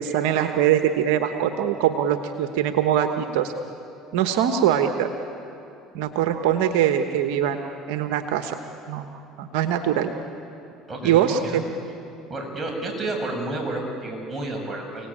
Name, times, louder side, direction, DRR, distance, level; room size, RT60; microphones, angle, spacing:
voice 1, 0.0-3.5 4.1-5.1 5.9-7.6 7.9-8.6 8.9-9.1 9.4-10.1 11.0-11.6, right 10 dB, 75° right, 6 dB, 1.3 m, -22 dB
voice 2, 10.9-11.6 12.3-15.1, right 2 dB, 20° right, 0 dB, 7.2 m, -30 dB
29.5 x 18.5 x 8.8 m, 2.8 s
supercardioid pair, 80°, 0 cm